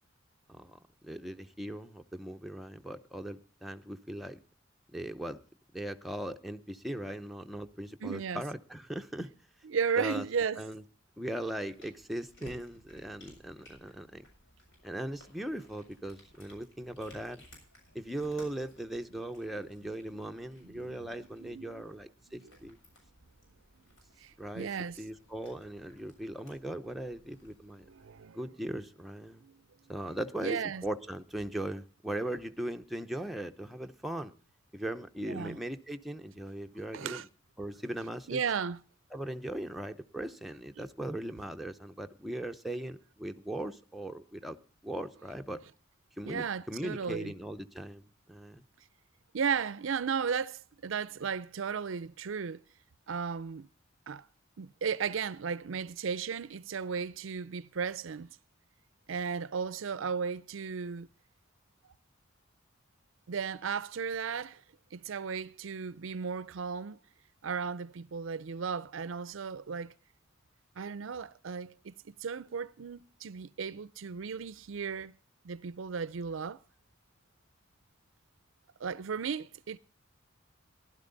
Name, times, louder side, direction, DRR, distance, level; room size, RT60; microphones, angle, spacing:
voice 1, 1.0-4.4 4.9-5.4 5.7-9.3 10.0-10.2 10.6-10.8 11.2-14.2 14.8-17.4 17.9-22.8 24.4-24.7 25.0-27.9 28.3-29.4 29.9-34.3 34.7-37.2 37.6-38.4 39.1-44.6 44.8-45.6 46.2-48.6, right 1 dB, ahead, 0.7 m, -39 dB
voice 2, 8.0-8.4 9.6-10.6 20.6-21.8 22.3-22.5 24.2-25.0 27.9-28.4 29.4-29.6 30.4-30.8 35.2-35.6 36.9-37.3 38.3-38.8 46.3-47.3 49.3-52.6 53.1-53.7 54.1-54.3 54.6-58.3 59.1-61.1 63.3-64.6 64.9-67.0 67.4-69.9 70.8-75.2 75.4-76.6 78.8-79.8, right 6 dB, 75° right, 0.5 m, -35 dB
Cat, 11.1-28.3, left 1 dB, 65° left, 7.1 m, -59 dB
16.0 x 12.0 x 3.9 m
head